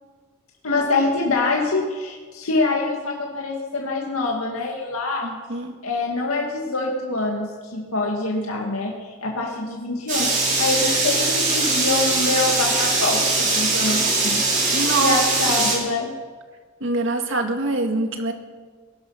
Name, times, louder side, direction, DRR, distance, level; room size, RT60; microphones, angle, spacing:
voice 1, 0.6-5.3 5.8-16.1, left 3 dB, 85° left, -1 dB, 2.2 m, -25 dB
voice 2, 5.2-5.7 14.7-15.2 15.6-15.7 16.8-18.3, right 2 dB, 60° right, 5 dB, 1.8 m, -24 dB
sound 1, 10.1-15.7, right 3 dB, 40° right, 6.1 m, -21 dB
20.5 x 12.0 x 5.8 m, 1.5 s
head